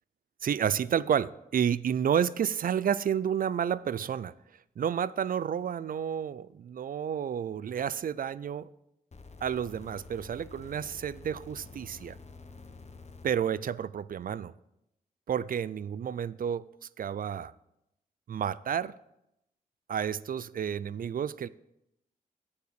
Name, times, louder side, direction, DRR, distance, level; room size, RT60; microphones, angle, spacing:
voice 1, 0.4-4.3 4.8-8.7 9.4-12.2 13.2-14.5 15.3-16.7 17.0-17.5 18.3-18.9 19.9-21.5, right 8 dB, 65° right, 0.4 m, -30 dB
sound 1, 9.1-13.3 14.3-14.4, left 3 dB, 45° left, 1.1 m, -49 dB
8.2 x 5.8 x 6.4 m
cardioid pair, 50°, 16 cm